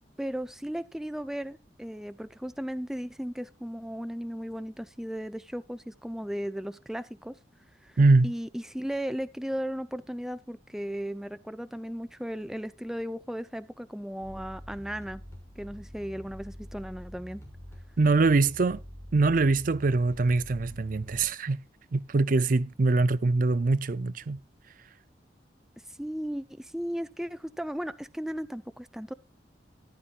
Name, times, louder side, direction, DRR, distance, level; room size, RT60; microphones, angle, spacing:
voice 1, 0.2-7.4 7.8-8.0 8.2-15.2 15.6-17.4 26.0-29.1, equal, 5° right, 0.5 m, -36 dB
voice 2, 8.0-8.3 18.0-18.8 19.1-21.6 21.9-24.4, right 3 dB, 50° right, 0.5 m, -23 dB
sound 1, 14.2-21.3, equal, 15° left, 6.5 m, -46 dB
14.0 x 11.5 x 2.5 m
head